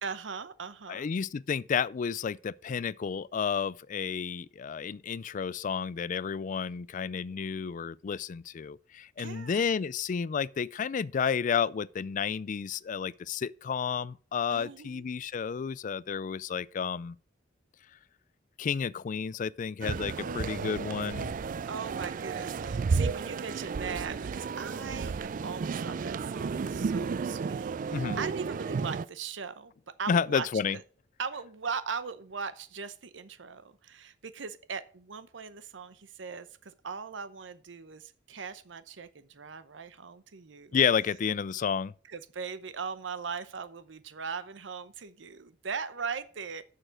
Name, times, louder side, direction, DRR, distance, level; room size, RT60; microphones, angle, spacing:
voice 1, 0.0-1.1 9.2-9.6 14.5-15.0 20.2-29.7 30.0-30.5 30.7-30.8 31.2-40.8 42.1-46.6, right 5 dB, 80° right, 0.8 m, -39 dB
voice 2, 0.9-17.2 18.6-21.3 27.9-28.2 30.1-30.8 40.7-41.9, left 6 dB, 45° left, 0.3 m, -31 dB
sound 1, 19.8-29.1, right 5 dB, 45° right, 0.3 m, -33 dB
6.8 x 6.6 x 7.5 m
head